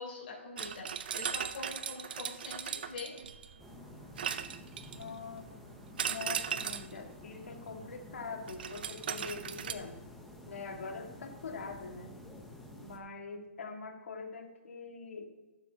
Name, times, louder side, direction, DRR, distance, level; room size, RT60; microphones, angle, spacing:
voice 1, 0.0-3.1, left 3 dB, 45° left, -4 dB, 3.2 m, -44 dB
Medal sounds, 0.6-3.6 4.2-5.2 6.0-7.0 8.5-9.7, right 8 dB, 45° right, 0.5 m, -37 dB
sound 1, 3.6-13.0, left 1 dB, ahead, 0.6 m, -51 dB
voice 2, 4.9-5.5 6.0-10.0 10.4-12.2 12.8-15.3, left 4 dB, 75° left, 4 dB, 1.6 m, -43 dB
14.0 x 7.6 x 2.7 m, 1.2 s
hypercardioid pair, 175°, 7 cm